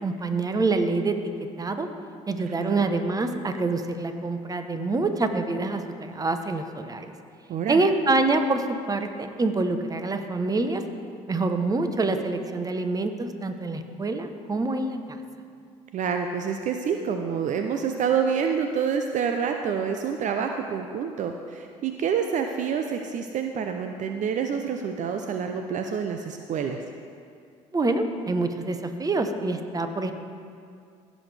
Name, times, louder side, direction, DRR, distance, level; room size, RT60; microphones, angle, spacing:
voice 1, 0.0-1.2 1.6-1.9 2.3-7.1 7.7-10.8 11.3-15.0 27.7-30.1, right 3 dB, 25° right, 7 dB, 0.9 m, -26 dB
voice 2, 2.4-2.8 7.5-7.8 15.9-26.8, right 7 dB, 55° right, 5 dB, 0.6 m, -27 dB
16.0 x 6.3 x 3.4 m, 2.3 s
hypercardioid pair, 60°, 15 cm